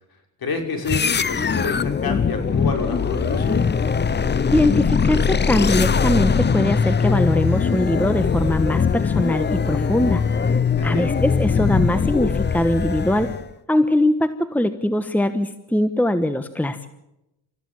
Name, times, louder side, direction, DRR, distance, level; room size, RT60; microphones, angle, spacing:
voice 1, 0.4-3.6 10.8-11.1, left 4 dB, 50° left, 4 dB, 6.0 m, -28 dB
sound 1, 0.9-13.5, left 6 dB, 25° left, 0.7 m, -21 dB
voice 2, 4.2-10.2 10.8-13.3 13.7-16.9, left 1 dB, 5° left, 10 dB, 1.2 m, -21 dB
28.5 x 14.5 x 7.3 m, 0.88 s
cardioid pair, 105°, 45 cm